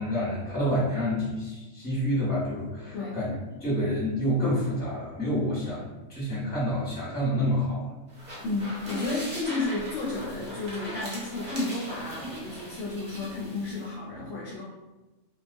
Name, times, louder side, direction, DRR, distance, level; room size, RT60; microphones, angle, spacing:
voice 1, 0.0-7.8, equal, 10° left, -9 dB, 0.8 m, -28 dB
sound 1, 8.1-13.9, equal, 45° right, 0.6 m, -40 dB
voice 2, 8.4-14.6, left 2 dB, 70° left, -5 dB, 0.8 m, -32 dB
2.3 x 2.2 x 2.5 m, 1.1 s
omnidirectional pair, 1.5 m